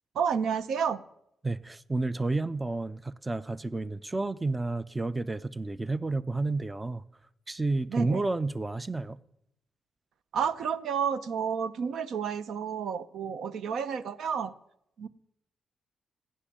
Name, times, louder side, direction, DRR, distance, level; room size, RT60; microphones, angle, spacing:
voice 1, 0.1-1.0 7.9-8.2 10.3-14.5 15.0-15.1, right 7 dB, 80° right, 0.7 m, -30 dB
voice 2, 1.4-7.0 7.5-9.2, right 2 dB, 20° right, 0.5 m, -31 dB
15.5 x 6.4 x 10.0 m
cardioid pair, 85°, 0 cm